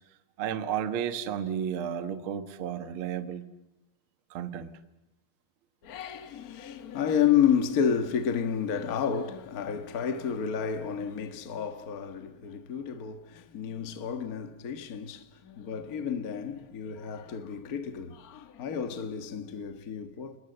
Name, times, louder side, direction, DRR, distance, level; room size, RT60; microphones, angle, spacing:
voice 1, 0.4-3.5 4.3-4.7, right 9 dB, 60° right, 1.4 m, -32 dB
voice 2, 5.8-20.4, left 8 dB, 80° left, 0.8 m, -30 dB
30.0 x 21.0 x 7.9 m
omnidirectional pair, 4.2 m